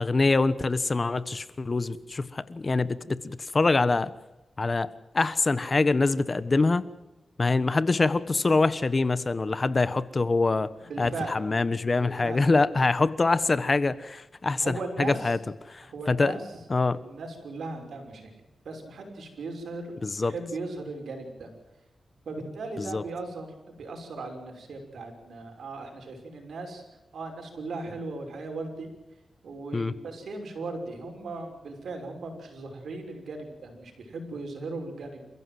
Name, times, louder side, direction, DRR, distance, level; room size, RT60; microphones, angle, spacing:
voice 1, 0.0-4.1 4.6-4.9 5.1-6.8 7.4-10.7 11.0-15.4 15.7-16.3 16.7-17.0 20.0-20.3 22.8-23.0 29.7-29.9, left 3 dB, 35° left, 15 dB, 1.2 m, -25 dB
voice 2, 10.8-11.4 11.9-12.4 14.6-15.3 15.9-16.4 16.9-18.3 18.6-19.9 20.2-21.5 22.3-26.8 27.1-28.9 29.4-35.3, right 3 dB, 80° right, 4 dB, 6.0 m, -37 dB
29.0 x 15.5 x 7.8 m, 1.0 s
cardioid pair, 80°, 0 cm